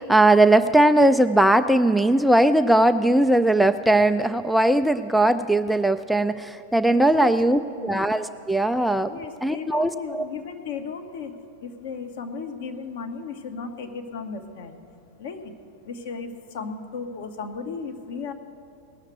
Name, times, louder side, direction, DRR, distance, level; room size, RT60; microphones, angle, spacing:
voice 1, 0.0-9.1 9.4-10.3, right 1 dB, ahead, 9 dB, 0.3 m, -19 dB
voice 2, 6.8-8.0 9.0-11.4 11.6-14.8 15.2-15.5 15.8-18.3, left 5 dB, 55° left, 6 dB, 0.9 m, -35 dB
18.5 x 6.5 x 7.9 m, 2.9 s
figure-of-eight pair, 90°, 0 cm